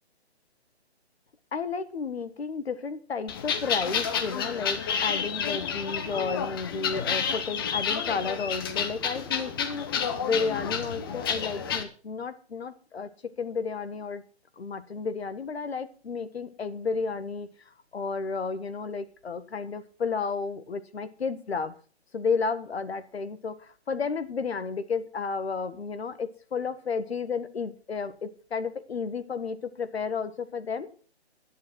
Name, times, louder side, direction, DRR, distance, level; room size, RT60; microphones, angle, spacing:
voice 1, 1.5-14.2 14.6-17.5 17.9-21.7 22.1-30.9, left 5 dB, 65° left, 11 dB, 1.6 m, -32 dB
sound 1, 3.3-11.8, left 7 dB, 20° left, 0.9 m, -30 dB
11.0 x 10.0 x 6.1 m, 0.40 s
hypercardioid pair, 160°, 33 cm